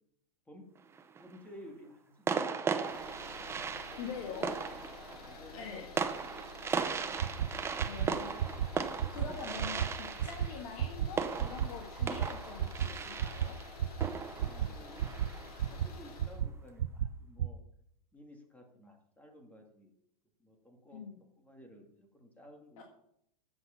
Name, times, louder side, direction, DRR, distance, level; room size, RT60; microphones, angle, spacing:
sound 1, 0.7-1.3 2.3-15.7, right 5 dB, 15° right, 0.7 m, -37 dB
voice 1, 1.2-2.7 3.3-4.5 5.2-5.9 14.4-15.1 15.7-17.6 18.1-19.9 20.4-22.8, equal, 5° left, 3 dB, 2.0 m, -54 dB
sound 2, 2.7-16.4, left 4 dB, 75° left, 3.3 m, -50 dB
voice 2, 4.0-4.6 5.5-5.9 7.9-8.5 8.8-13.6 20.9-21.2 22.8-22.9, left 6 dB, 55° left, 2 dB, 1.7 m, -44 dB
sound 3, 7.2-7.5 7.8-8.1 8.4-8.7 9.0-9.3 9.6-9.9 10.2-10.5 10.8-11.1 11.4-11.7 12.0-12.3 12.6-12.9 13.2-13.5 13.8-14.1 14.4-14.7 15.0-15.3 15.6-15.9 16.2-16.5 16.8-17.1 17.4-17.5, right 11 dB, 80° right, 0.6 m, -31 dB
9.7 x 7.8 x 5.7 m, 0.73 s
hypercardioid pair, 135°, 20 cm